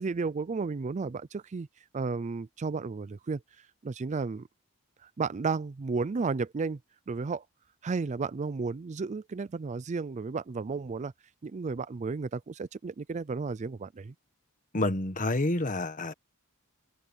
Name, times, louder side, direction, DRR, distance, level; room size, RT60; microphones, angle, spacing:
voice 1, 0.0-1.7 1.9-3.4 3.8-4.5 5.0-6.8 7.1-7.4 7.8-11.1 11.4-14.1, right 4 dB, 35° right, 0.4 m, -33 dB
voice 2, 14.7-16.1, left 2 dB, 35° left, 1.5 m, -28 dB
head